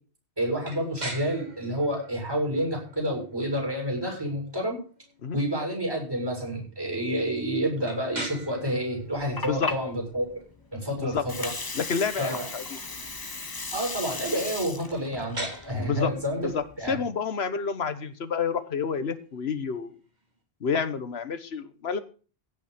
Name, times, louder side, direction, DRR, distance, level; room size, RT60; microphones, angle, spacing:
voice 1, 0.4-4.8 5.3-10.4 10.7-11.5 12.2-12.5 13.7-16.5 16.8-17.0, equal, 20° right, 0 dB, 6.9 m, -29 dB
sound 1, 0.6-20.4, right 2 dB, 40° right, 2.7 m, -45 dB
Water, 9.0-17.0, left 3 dB, 20° left, 0.8 m, -37 dB
voice 2, 11.7-12.6 15.8-16.1 16.4-19.9 20.6-22.0, left 6 dB, 70° left, 12 dB, 1.4 m, -29 dB
16.5 x 6.2 x 6.7 m, 0.37 s
omnidirectional pair, 1.1 m